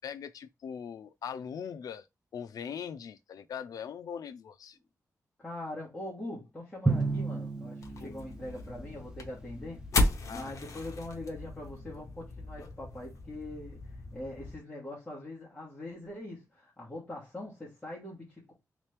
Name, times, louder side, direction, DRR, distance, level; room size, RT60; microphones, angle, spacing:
voice 1, 0.0-2.1 2.3-4.8 8.0-8.1 10.3-10.5, left 7 dB, 85° left, 0.3 m, -41 dB
voice 2, 5.4-9.9 10.3-18.5, left 1 dB, 10° left, 1.2 m, -42 dB
Drum, 6.9-9.0, right 3 dB, 10° right, 0.4 m, -32 dB
sound 1, 7.8-14.6, left 2 dB, 60° left, 0.8 m, -35 dB
3.2 x 3.0 x 3.2 m
wide cardioid pair, 180°, 6 cm